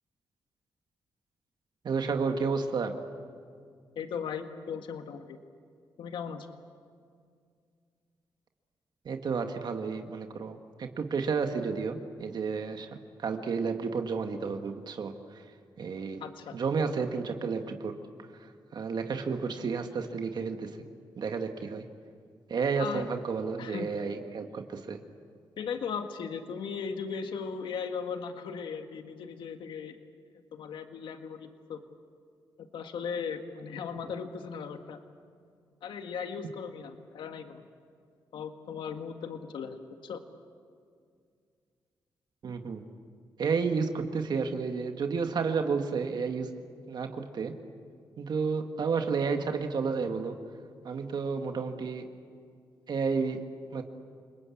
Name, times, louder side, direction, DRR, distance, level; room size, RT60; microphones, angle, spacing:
voice 1, 1.8-2.9 9.1-12.9 13.2-15.4 15.8-16.2 16.5-17.9 18.4-20.7 21.2-21.8 22.5-25.0 42.4-42.8 43.4-46.5 46.9-47.6 48.2-50.4 50.8-52.0 52.9-53.4 53.7-53.8, right 5 dB, 60° right, 5 dB, 1.9 m, -31 dB
voice 2, 3.9-5.4 6.0-6.5 16.2-16.6 22.8-23.1 23.6-23.9 25.6-30.0 30.5-31.8 32.7-35.0 35.8-37.7 38.3-40.2, left 6 dB, 80° left, 6 dB, 1.7 m, -37 dB
29.0 x 20.5 x 8.6 m, 2.2 s
cardioid pair, 80°, 8 cm